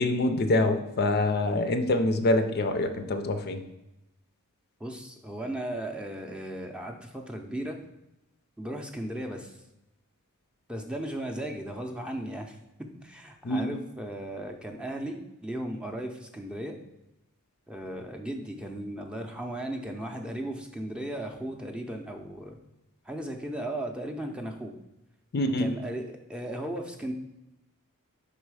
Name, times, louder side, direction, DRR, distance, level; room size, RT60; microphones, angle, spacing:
voice 1, 0.0-3.6 13.4-13.8 25.3-25.7, left 2 dB, 45° left, 7 dB, 0.5 m, -25 dB
voice 2, 4.8-7.8 8.6-9.6 10.7-16.8 17.7-22.6 23.1-24.7 25.6-27.1, right 1 dB, 5° right, 2 dB, 0.5 m, -36 dB
5.4 x 4.1 x 4.7 m, 0.93 s
head